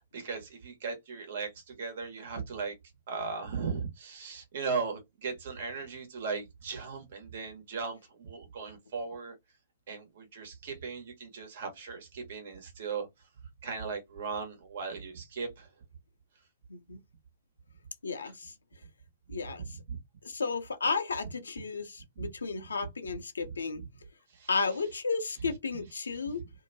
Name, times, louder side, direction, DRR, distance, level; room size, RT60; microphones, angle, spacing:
voice 1, 0.0-2.8 3.1-9.4 9.9-13.1 13.6-15.7 19.9-20.0 22.2-22.3 23.5-23.9 24.3-24.5, right 5 dB, 60° right, 1.1 m, -37 dB
voice 2, 18.0-18.5 19.3-19.7 20.2-23.8 24.5-26.4, left 4 dB, 90° left, 0.6 m, -33 dB
2.7 x 2.2 x 2.6 m
hypercardioid pair, 120°, 0 cm